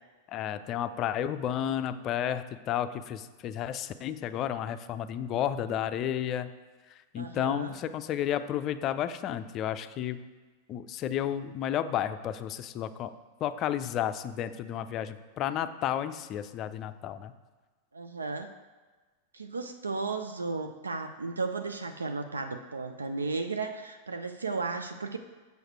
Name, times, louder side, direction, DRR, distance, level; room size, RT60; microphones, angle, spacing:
voice 1, 0.3-6.5 7.1-10.2 10.7-13.1 13.4-17.3, left 10 dB, 35° left, 11 dB, 0.4 m, -32 dB
voice 2, 7.2-7.7 17.9-18.5 19.3-25.2, right 4 dB, 75° right, 7 dB, 0.4 m, -34 dB
6.9 x 6.4 x 4.5 m, 1.3 s
figure-of-eight pair, 90°, 0 cm